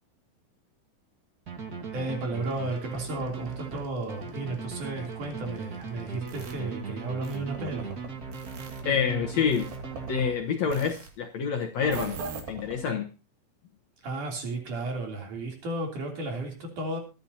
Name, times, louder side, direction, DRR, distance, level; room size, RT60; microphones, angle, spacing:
sound 1, 1.5-10.8, right 5 dB, 35° right, 1.8 m, -38 dB
voice 1, 1.9-8.0 14.0-17.0, right 2 dB, 60° right, 4.6 m, -33 dB
sound 2, 2.4-6.5 7.2-8.9 9.5-10.3 10.7-11.1 11.8-12.8, right 4 dB, 80° right, 4.2 m, -41 dB
voice 2, 8.9-9.7 10.1-12.2 12.5-13.1, left 7 dB, 60° left, 2.0 m, -27 dB
23.0 x 10.5 x 2.9 m
omnidirectional pair, 4.2 m